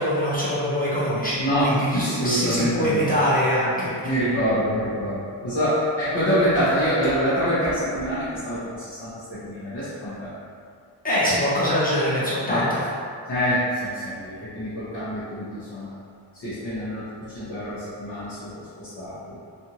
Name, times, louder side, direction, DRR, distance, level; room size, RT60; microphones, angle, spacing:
voice 1, 0.0-4.1 11.0-12.8, equal, 20° left, -10 dB, 0.7 m, -23 dB
voice 2, 1.4-3.1 3.8-10.3 12.5-12.6 13.3-15.9 16.3-19.4, equal, 60° left, -14 dB, 1.0 m, -26 dB
2.6 x 2.5 x 2.8 m, 2.3 s
wide cardioid pair, 135°, 46 cm